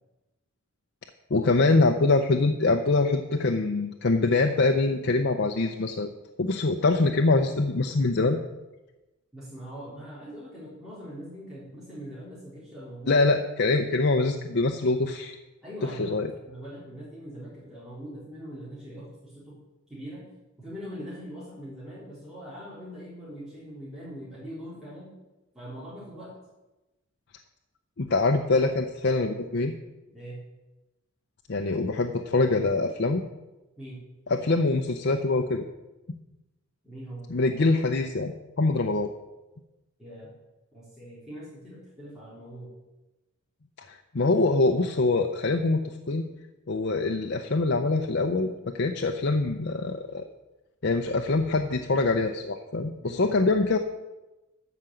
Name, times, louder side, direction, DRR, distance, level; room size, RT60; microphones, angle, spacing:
voice 1, 1.3-6.1 6.4-8.4 13.1-15.3 16.0-16.3 28.0-29.7 31.5-33.2 34.3-35.6 37.3-39.1 43.9-46.2 46.7-50.2 50.8-53.8, left 3 dB, 55° left, 4 dB, 0.7 m, -24 dB
voice 2, 9.3-13.3 13.6-14.1 15.6-16.2 16.4-19.5 19.9-20.2 20.6-25.1 25.5-26.3 30.1-30.4 33.8-34.0 36.8-37.3 40.0-40.3 40.7-42.7 53.0-53.3, equal, 5° right, -11 dB, 3.8 m, -42 dB
13.5 x 5.1 x 7.8 m, 1.0 s
head